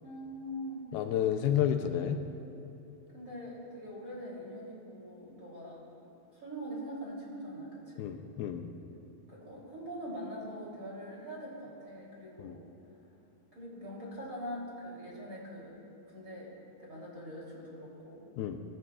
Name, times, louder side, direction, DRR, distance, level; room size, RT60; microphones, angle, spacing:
voice 1, 0.0-0.9 3.1-5.8 6.3-8.1 9.3-12.6 13.5-15.7 16.1-16.5 16.8-18.2, equal, 20° right, -5 dB, 3.3 m, -43 dB
voice 2, 0.9-2.2 8.0-8.7 12.4-12.6 18.4-18.6, left 10 dB, 80° left, 5 dB, 2.5 m, -30 dB
24.0 x 18.5 x 2.5 m, 2.9 s
omnidirectional pair, 4.5 m